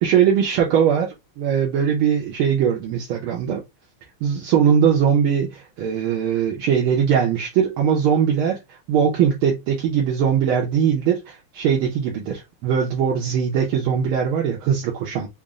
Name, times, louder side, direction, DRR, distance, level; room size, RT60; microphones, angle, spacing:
voice 1, 0.0-3.6 4.2-8.6 8.9-15.3, right 8 dB, 85° right, 1.6 m, -20 dB
4.2 x 2.0 x 3.6 m
omnidirectional pair, 2.3 m